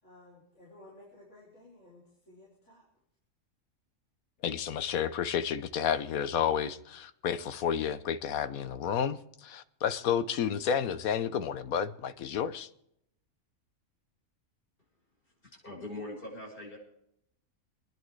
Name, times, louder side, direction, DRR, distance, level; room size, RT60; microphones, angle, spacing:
voice 1, 0.0-2.9, left 1 dB, 55° left, 4.5 m, -55 dB
voice 2, 4.4-12.7, left 8 dB, 80° left, 1.3 m, -31 dB
voice 3, 15.5-16.8, left 1 dB, 35° left, 6.6 m, -41 dB
27.5 x 10.5 x 3.2 m
omnidirectional pair, 1.5 m